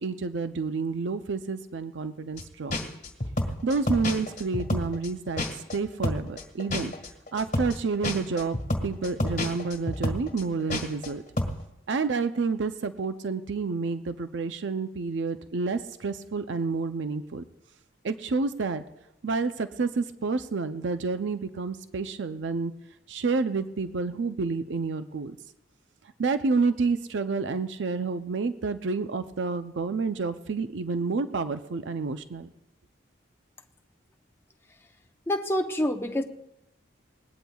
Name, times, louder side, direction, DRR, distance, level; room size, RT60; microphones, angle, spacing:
voice 1, 0.0-2.8 3.6-6.9 7.3-8.6 8.8-11.2 11.9-17.4 18.0-18.8 19.2-22.7 23.1-25.4 26.2-32.5, right 4 dB, 75° right, 10 dB, 0.5 m, -29 dB
sound 1, 2.4-2.5 2.7-5.8 6.0-11.1 11.4-11.6, left 1 dB, 40° left, 1.6 m, -29 dB
voice 2, 35.3-36.2, left 1 dB, 15° left, 4 dB, 0.7 m, -26 dB
20.5 x 18.5 x 2.3 m, 0.90 s
head